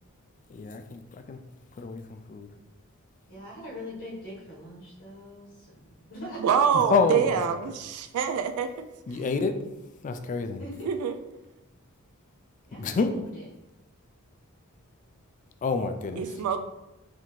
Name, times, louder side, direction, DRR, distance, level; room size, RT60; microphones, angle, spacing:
voice 1, 0.5-1.4 1.8-2.5 6.7-7.4 9.1-9.5 10.0-10.6 12.8-13.1 15.6-16.3, left 4 dB, 35° left, 7 dB, 0.3 m, -28 dB
voice 2, 3.3-6.4 10.6-10.9 12.7-13.4, left 1 dB, 60° left, -6 dB, 1.1 m, -42 dB
voice 3, 6.4-8.7 10.9-11.2 16.2-16.6, right 7 dB, 85° right, 7 dB, 0.3 m, -25 dB
4.1 x 2.7 x 3.0 m, 0.96 s
head